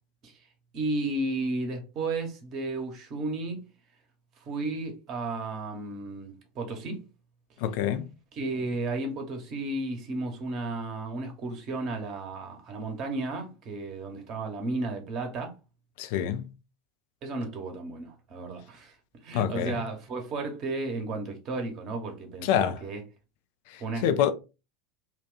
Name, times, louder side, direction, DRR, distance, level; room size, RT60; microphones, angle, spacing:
voice 1, 0.7-3.6 4.4-7.0 8.3-15.5 17.2-18.9 19.2-23.0 23.8-24.0, right 2 dB, 45° right, 1.1 m, -33 dB
voice 2, 7.6-8.1 16.0-16.5 19.3-19.8 22.4-22.8 23.7-24.3, left 9 dB, 60° left, 0.4 m, -27 dB
2.8 x 2.4 x 3.8 m
hypercardioid pair, 80°, 0 cm